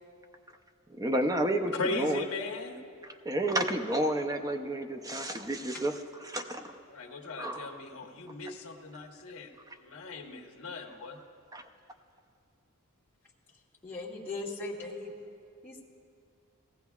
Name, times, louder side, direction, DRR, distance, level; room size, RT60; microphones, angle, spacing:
voice 1, 0.9-2.2 3.2-5.9 6.2-6.7 7.4-7.7 11.5-11.6, right 1 dB, 15° right, 6 dB, 0.5 m, -30 dB
voice 2, 1.7-2.8 6.9-11.2, left 3 dB, 70° left, 2 dB, 1.1 m, -38 dB
voice 3, 13.8-15.2 15.6-15.8, left 2 dB, 10° left, -8 dB, 2.0 m, -38 dB
19.0 x 14.5 x 2.4 m, 2.4 s
head